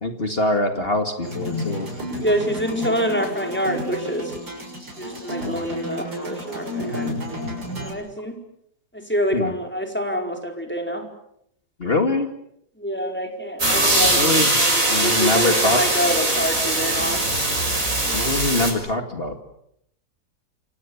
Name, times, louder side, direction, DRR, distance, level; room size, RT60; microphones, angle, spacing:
voice 1, 0.0-1.9 5.4-5.6 9.3-9.5 11.8-12.3 13.9-14.5 14.9-15.8 18.1-19.4, left 2 dB, 35° left, 5 dB, 2.4 m, -23 dB
sound 1, 1.2-7.9, left 1 dB, 80° right, 7.2 m, -31 dB
voice 2, 2.2-4.3 5.0-7.2 7.8-8.4 8.9-11.0 12.8-17.2, equal, 5° left, 3 dB, 4.8 m, -26 dB
sound 2, 13.6-18.7, right 2 dB, 55° right, 6.5 m, -21 dB
28.5 x 25.5 x 7.2 m, 0.75 s
omnidirectional pair, 1.7 m